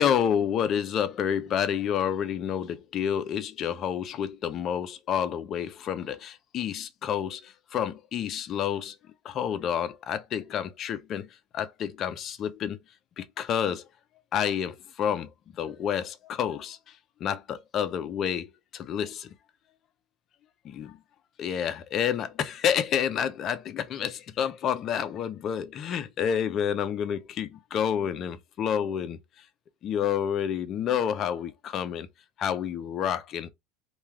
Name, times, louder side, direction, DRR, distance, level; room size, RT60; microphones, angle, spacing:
voice 1, 0.0-8.9 9.2-11.3 11.5-12.8 13.2-13.9 14.3-15.3 15.6-16.8 17.2-19.3 20.6-21.0 21.4-29.2 29.8-32.1 32.4-33.5, left 8 dB, 45° left, 0.5 m, -29 dB
2.3 x 2.2 x 3.2 m
supercardioid pair, 105°, 0 cm